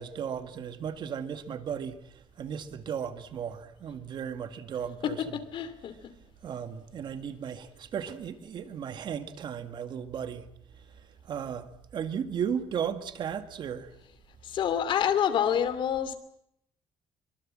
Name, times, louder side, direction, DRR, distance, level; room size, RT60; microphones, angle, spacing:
voice 1, 0.0-5.4 6.4-10.5 11.2-13.9, right 8 dB, 55° right, 2.0 m, -35 dB
voice 2, 5.0-5.9 14.4-16.2, left 9 dB, 60° left, 2.7 m, -27 dB
24.5 x 24.0 x 7.6 m
cardioid pair, 125°, 9 cm